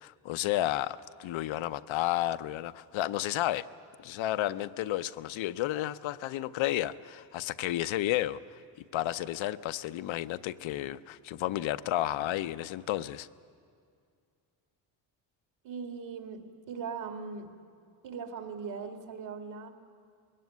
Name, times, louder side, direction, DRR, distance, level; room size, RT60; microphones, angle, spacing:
voice 1, 0.0-3.7 4.0-8.4 8.9-13.3, left 14 dB, 70° left, 13 dB, 0.7 m, -32 dB
voice 2, 15.6-16.4 16.7-17.5 18.0-19.7, right 5 dB, 65° right, 4 dB, 2.4 m, -39 dB
21.5 x 17.0 x 9.3 m, 2.3 s
cardioid pair, 105°, 48 cm